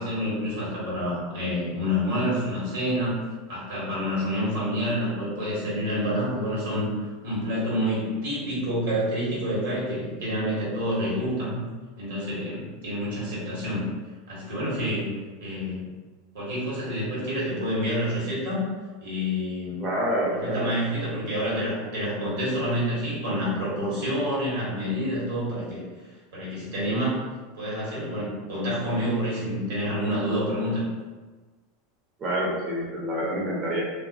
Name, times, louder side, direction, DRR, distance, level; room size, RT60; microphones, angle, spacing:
voice 1, 0.0-3.1 3.5-11.6 12.0-13.9 14.3-15.1 15.4-15.9 16.3-18.7 19.0-19.8 20.3-25.8 26.3-27.2 27.5-30.8, equal, 80° right, -6 dB, 1.3 m, -28 dB
voice 2, 19.8-20.7 32.2-33.8, equal, 40° right, -5 dB, 0.6 m, -27 dB
2.6 x 2.5 x 2.4 m, 1.3 s
hypercardioid pair, 95°, 0 cm